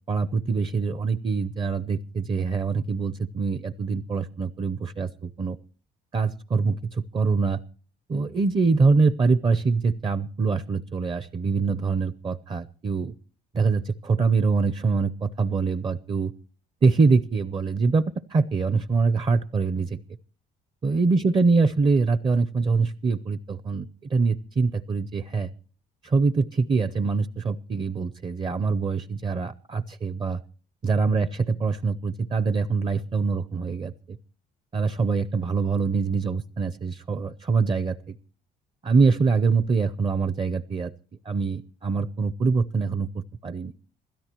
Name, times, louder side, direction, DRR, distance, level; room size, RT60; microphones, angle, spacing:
voice 1, 0.1-5.6 6.1-7.6 8.1-13.1 13.5-16.3 16.8-18.0 18.3-20.0 20.8-25.5 26.0-30.4 30.8-34.2 34.7-38.1 38.8-40.9 41.2-43.7, right 4 dB, 30° right, 15 dB, 0.6 m, -24 dB
26.5 x 13.0 x 3.0 m, 0.41 s
cardioid pair, 110°, 17 cm